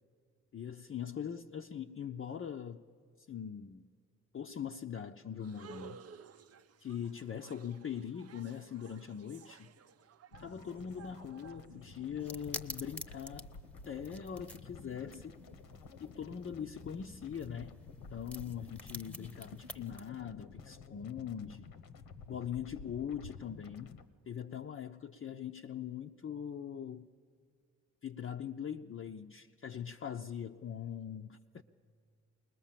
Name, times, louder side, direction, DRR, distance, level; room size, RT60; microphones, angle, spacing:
voice 1, 0.5-2.8 3.2-3.9 4.3-6.0 6.8-9.7 10.4-13.5 13.8-15.4 16.0-21.7 22.3-24.0 24.3-27.1 28.0-31.6, left 8 dB, 40° left, 0.6 m, -42 dB
sound 1, 5.4-12.3, right 6 dB, 45° right, 0.6 m, -55 dB
sound 2, 10.3-24.1, left 4 dB, 80° left, 1.1 m, -52 dB
sound 3, 12.2-20.1, equal, 5° left, 0.9 m, -50 dB
21.0 x 19.5 x 7.5 m
supercardioid pair, 55°, 34 cm